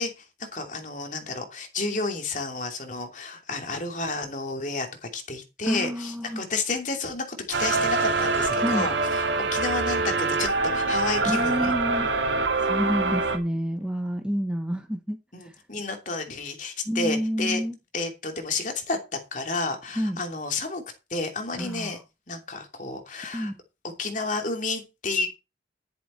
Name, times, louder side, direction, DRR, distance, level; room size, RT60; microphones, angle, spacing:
voice 1, 0.0-11.7 15.3-17.6 17.9-19.0 19.3-20.8 21.1-22.0 22.3-23.5 24.0-25.3, left 3 dB, 40° left, 2.9 m, -31 dB
voice 2, 5.7-6.4 8.5-8.9 11.2-12.1 12.6-15.5 16.9-17.8 20.0-20.2 21.5-22.0 23.3-23.5, equal, 5° right, 1.2 m, -29 dB
sound 1, 7.5-13.4, right 3 dB, 75° right, 2.6 m, -25 dB
11.5 x 10.5 x 4.5 m
head